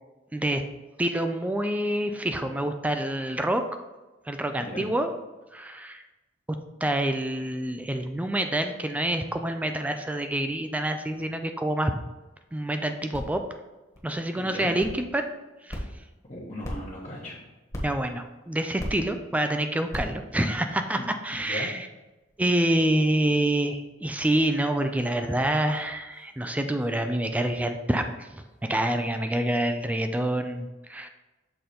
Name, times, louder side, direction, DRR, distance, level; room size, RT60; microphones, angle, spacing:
voice 1, 0.3-0.6 1.0-3.6 4.3-5.1 5.5-6.0 6.8-11.9 12.5-13.4 14.0-15.2 15.7-15.8 17.8-21.9 22.4-28.4 28.7-31.1, right 1 dB, 10° right, 6 dB, 0.3 m, -27 dB
voice 2, 4.6-4.9 14.4-14.7 16.3-17.4 21.4-21.7, left 1 dB, 35° left, -6 dB, 1.1 m, -37 dB
sound 1, 12.5-28.9, equal, 15° left, 1.3 m, -44 dB
6.7 x 3.9 x 4.3 m, 1.1 s
head